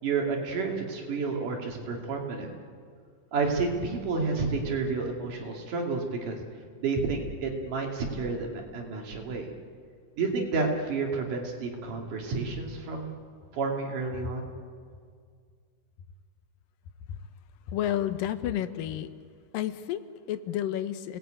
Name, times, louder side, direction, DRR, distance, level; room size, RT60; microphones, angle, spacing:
voice 1, 0.0-2.5 3.3-6.4 6.8-9.5 10.2-13.2 13.5-14.4, right 4 dB, 70° right, 1 dB, 4.1 m, -30 dB
voice 2, 17.7-19.1 19.5-21.2, left 11 dB, 85° left, 11 dB, 2.7 m, -31 dB
29.5 x 19.0 x 9.0 m, 2.1 s
omnidirectional pair, 3.8 m